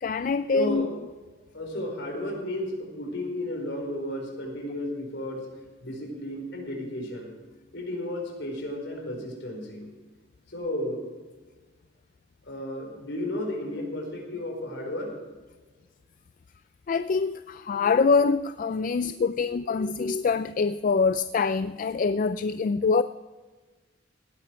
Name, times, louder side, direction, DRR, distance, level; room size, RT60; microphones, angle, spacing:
voice 1, 0.0-0.9 16.9-23.0, left 4 dB, 45° left, 0.3 m, -24 dB
voice 2, 0.5-0.9 1.5-5.5 5.8-7.3 7.7-9.9 10.5-11.1 12.4-15.1 17.7-17.9 18.9-19.1 19.4-20.1, left 1 dB, 65° left, 4.6 m, -33 dB
18.0 x 11.0 x 4.7 m
head